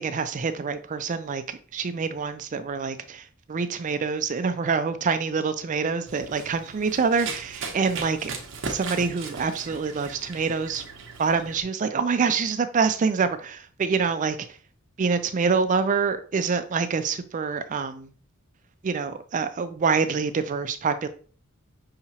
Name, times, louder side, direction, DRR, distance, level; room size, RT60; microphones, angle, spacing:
voice 1, 0.0-8.3 8.6-10.8 11.2-14.4 15.0-18.1 18.8-21.1, right 5 dB, 35° right, 0.4 m, -26 dB
Run, 6.1-11.6, right 4 dB, 65° right, 0.7 m, -37 dB
5.7 x 2.8 x 2.8 m
head